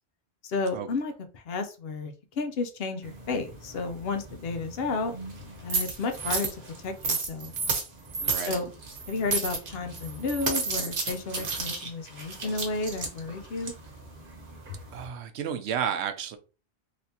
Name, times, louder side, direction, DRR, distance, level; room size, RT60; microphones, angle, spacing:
voice 1, 0.4-5.1 5.6-6.5 6.8-7.5 8.4-8.7 9.1-13.7, left 3 dB, 65° left, 0.8 m, -32 dB
sound 1, 3.0-15.1, right 4 dB, 55° right, 1.1 m, -33 dB
voice 2, 8.2-8.6 14.9-16.4, right 8 dB, 75° right, 0.8 m, -32 dB
3.4 x 2.9 x 2.7 m
omnidirectional pair, 1.1 m